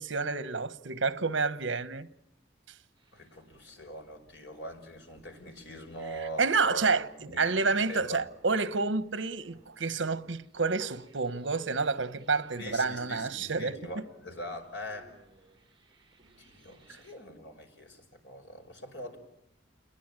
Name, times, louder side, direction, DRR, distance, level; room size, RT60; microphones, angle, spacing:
voice 1, 0.0-2.1 6.4-13.8 16.9-17.0, right 4 dB, 75° right, 1.2 m, -29 dB
sound 1, 3.0-17.1, right 1 dB, 25° right, 6.4 m, -63 dB
voice 2, 3.1-8.2 12.6-15.1 16.4-19.2, equal, 65° left, 5.8 m, -42 dB
29.0 x 21.5 x 9.0 m
head